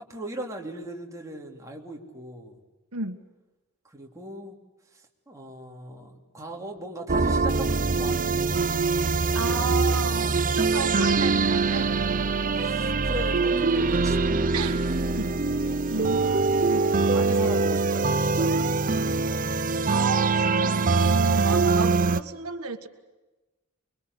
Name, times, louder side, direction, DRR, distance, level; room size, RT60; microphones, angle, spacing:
voice 1, 0.0-2.6 3.8-4.6 4.9-8.8 12.5-14.5 15.9-19.7, right 1 dB, 15° right, 0 dB, 3.1 m, -39 dB
sound 1, 7.1-22.2, right 4 dB, 40° right, 0.8 m, -23 dB
voice 2, 9.3-11.9 14.5-14.8 15.1-15.4 15.9-16.9 19.9-22.9, right 3 dB, 90° right, 7 dB, 1.8 m, -32 dB
25.0 x 23.5 x 8.2 m, 1.1 s
head